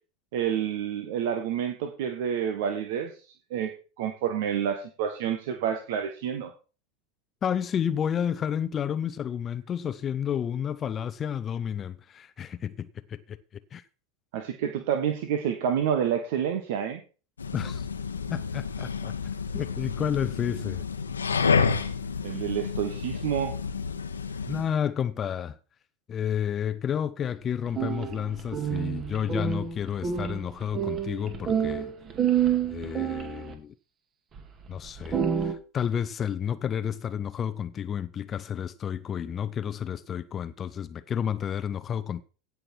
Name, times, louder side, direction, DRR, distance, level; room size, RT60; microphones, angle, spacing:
voice 1, 0.3-3.1 3.5-3.7 4.0-6.5 14.3-17.0 22.2-23.5, right 8 dB, 65° right, 1.4 m, -28 dB
voice 2, 7.4-13.4 13.7-13.8 17.5-17.9 18.3-19.1 19.5-20.8 24.5-25.6 26.1-31.9 32.6-33.7 34.7-42.2, left 8 dB, 30° left, 0.6 m, -31 dB
sound 1, 17.4-24.7, left 5 dB, 85° left, 1.1 m, -30 dB
sound 2, 27.7-33.5 34.4-34.5 34.9-35.5, right 8 dB, 35° right, 2.3 m, -28 dB
16.5 x 6.2 x 4.5 m
hypercardioid pair, 85°, 0 cm